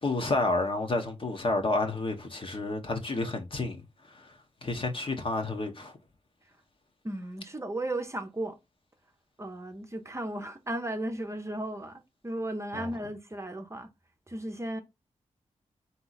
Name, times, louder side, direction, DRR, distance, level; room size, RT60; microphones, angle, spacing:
voice 1, 0.0-4.3 4.6-5.9 12.7-12.9, left 2 dB, 45° left, 1.1 m, -30 dB
voice 2, 7.0-8.6 9.4-13.9 14.3-14.8, right 1 dB, 20° right, 0.8 m, -35 dB
3.8 x 2.9 x 4.0 m
cardioid pair, 65°, 13 cm